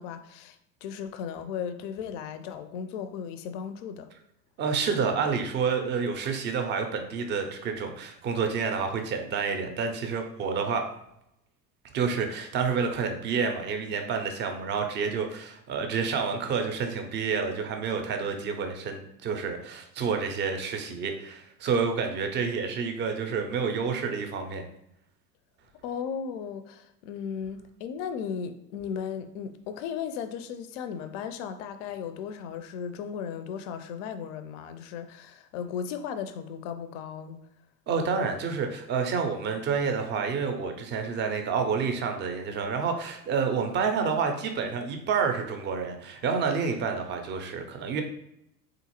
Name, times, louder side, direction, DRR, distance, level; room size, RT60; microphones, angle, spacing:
voice 1, 0.0-4.1 25.8-37.4, left 7 dB, 50° left, 0.5 m, -36 dB
voice 2, 4.6-10.9 11.9-24.6 37.9-48.0, right 5 dB, 25° right, 0.4 m, -29 dB
3.5 x 2.5 x 2.9 m
figure-of-eight pair, 75°, 48 cm